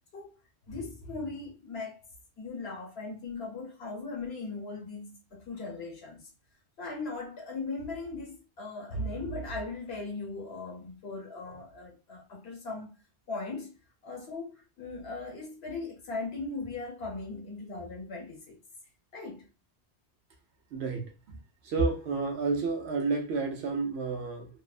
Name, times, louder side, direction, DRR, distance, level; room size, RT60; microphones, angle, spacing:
voice 1, 0.7-2.0 2.4-6.3 6.8-13.0 13.3-13.7 14.0-18.6 19.1-19.4, left 3 dB, 70° left, 1.2 m, -38 dB
voice 2, 20.7-21.1 21.6-24.5, right 4 dB, 70° right, 0.8 m, -30 dB
2.7 x 2.0 x 2.4 m
omnidirectional pair, 1.1 m